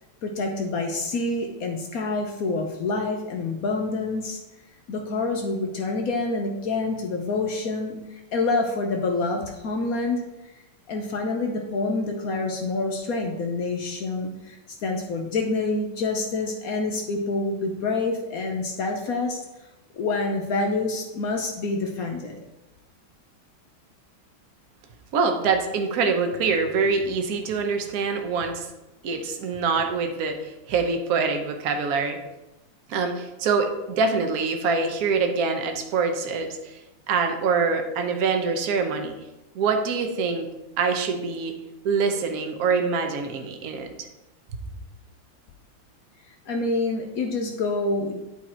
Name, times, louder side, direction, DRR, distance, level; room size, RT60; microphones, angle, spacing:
voice 1, 0.2-4.4 4.9-10.2 10.9-14.6 14.8-19.4 19.9-22.4 46.5-48.2, left 3 dB, 70° left, 2 dB, 0.8 m, -27 dB
voice 2, 25.1-28.7 29.0-32.2 32.9-36.8 37.1-39.2 39.5-40.5 40.8-41.5 41.8-44.1, right 5 dB, 60° right, 5 dB, 1.0 m, -25 dB
8.5 x 4.3 x 4.3 m, 0.99 s
omnidirectional pair, 2.3 m